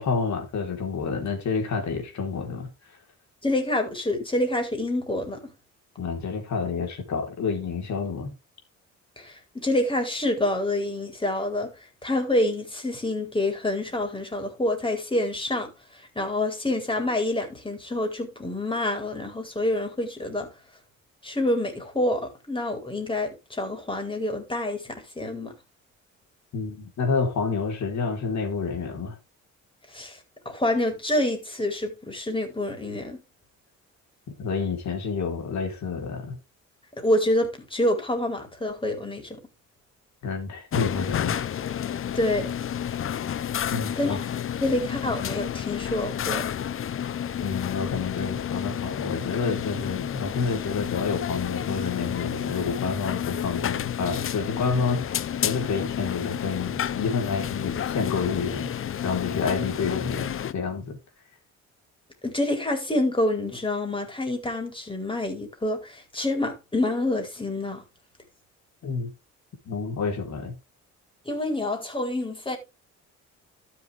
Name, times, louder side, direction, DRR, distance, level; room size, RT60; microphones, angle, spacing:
voice 1, 0.0-3.0 6.0-8.4 26.5-29.2 34.4-36.4 40.2-41.4 41.9-42.1 43.7-44.2 47.4-58.7 59.0-61.0 68.8-69.1 69.7-70.6, left 5 dB, 65° left, 4.3 m, -29 dB
voice 2, 3.4-5.4 9.2-11.7 12.0-20.5 21.2-25.5 29.9-30.2 30.4-33.2 37.0-39.4 42.1-42.5 44.0-44.2 44.6-46.5 62.2-67.8 71.2-72.6, left 1 dB, 15° left, 4.6 m, -27 dB
sound 1, 40.7-60.5, left 9 dB, 45° left, 0.7 m, -30 dB
12.5 x 7.0 x 3.7 m
cardioid pair, 90°, 30 cm